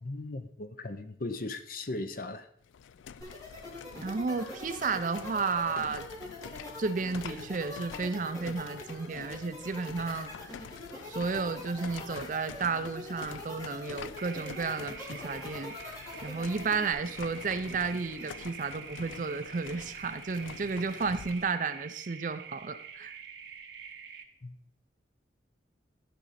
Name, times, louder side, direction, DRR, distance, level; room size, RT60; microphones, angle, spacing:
voice 1, 0.0-2.5 24.4-24.5, left 2 dB, 50° left, 0.6 m, -37 dB
sound 1, 2.6-21.5, left 7 dB, 85° left, 0.3 m, -47 dB
sound 2, 3.2-16.9, left 1 dB, 20° left, 2.2 m, -43 dB
voice 2, 4.0-6.1 6.8-10.3 11.0-15.8 16.2-23.1, right 4 dB, 45° right, 0.5 m, -32 dB
sound 3, 14.2-24.2, right 7 dB, 70° right, 0.9 m, -46 dB
12.5 x 5.2 x 4.2 m
head